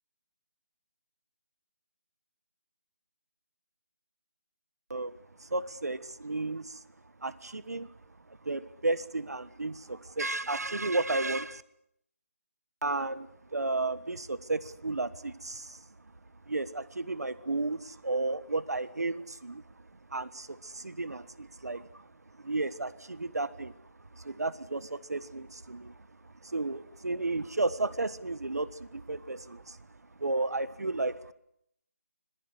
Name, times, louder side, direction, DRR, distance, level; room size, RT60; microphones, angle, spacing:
voice 1, 5.4-6.8 7.2-7.9 8.4-11.6 12.8-13.3 13.5-15.8 16.5-19.6 20.1-22.0 22.4-23.7 24.2-25.9 26.4-29.8 30.2-31.3, right 2 dB, 85° right, 15 dB, 1.4 m, -33 dB
26.0 x 20.0 x 8.2 m, 0.75 s
figure-of-eight pair, 165°, 8 cm